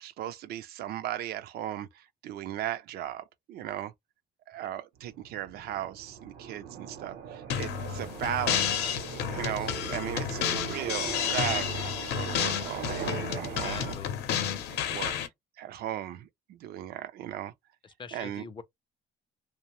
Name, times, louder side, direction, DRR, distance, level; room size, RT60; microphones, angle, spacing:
voice 1, 0.0-3.9 4.5-8.9 9.3-13.9 14.7-15.2 15.6-17.5 18.1-18.5, right 12 dB, 65° right, 0.4 m, -37 dB
sound 1, 5.0-14.0, right 7 dB, 90° right, 0.8 m, -41 dB
sound 2, 7.5-15.3, left 9 dB, 80° left, 0.6 m, -31 dB
voice 2, 13.6-14.3 18.0-18.6, left 6 dB, 30° left, 0.4 m, -43 dB
2.6 x 2.0 x 2.9 m
cardioid pair, 110°, 17 cm